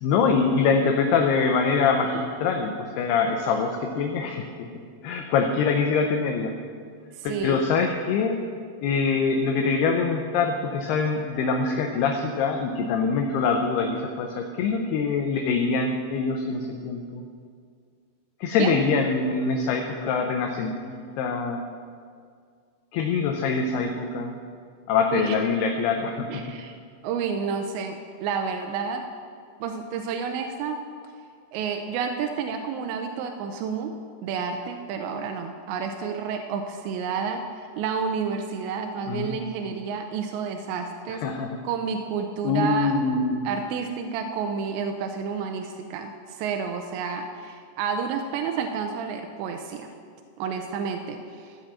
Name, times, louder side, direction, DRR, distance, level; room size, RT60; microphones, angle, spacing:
voice 1, 0.0-4.4 5.0-6.5 7.2-8.4 8.8-17.2 18.4-21.6 22.9-24.4 24.9-26.4 39.1-39.4 41.1-41.5 42.4-43.5, left 5 dB, 80° left, 3 dB, 2.5 m, -24 dB
voice 2, 7.2-7.6 18.6-18.8 25.1-25.4 26.3-26.7 27.0-29.0 29.6-30.8 31.5-33.9 34.2-41.2 41.6-42.9 43.4-49.9 50.4-51.6, right 6 dB, 85° right, 5 dB, 2.8 m, -30 dB
14.5 x 5.7 x 7.4 m, 2.1 s
omnidirectional pair, 5.2 m